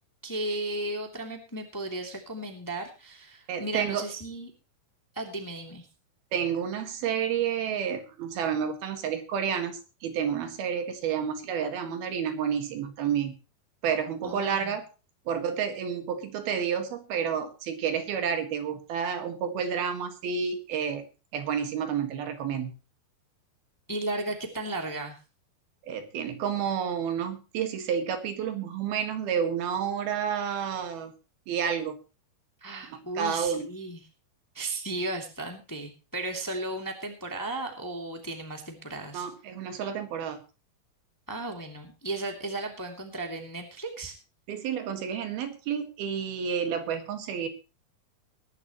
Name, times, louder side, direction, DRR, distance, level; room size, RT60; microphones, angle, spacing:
voice 1, 0.2-4.5 5.1-5.9 14.2-14.8 23.9-25.2 32.6-34.0 34.5-39.3 41.3-44.1, right 2 dB, 5° left, 3 dB, 2.0 m, -35 dB
voice 2, 3.5-4.1 6.3-13.4 13.8-14.8 15.3-21.0 21.3-22.7 25.8-31.1 31.5-32.0 32.9-33.7 39.1-40.4 44.5-47.5, right 7 dB, 75° right, 7 dB, 3.7 m, -30 dB
21.0 x 11.0 x 3.1 m, 0.32 s
omnidirectional pair, 4.4 m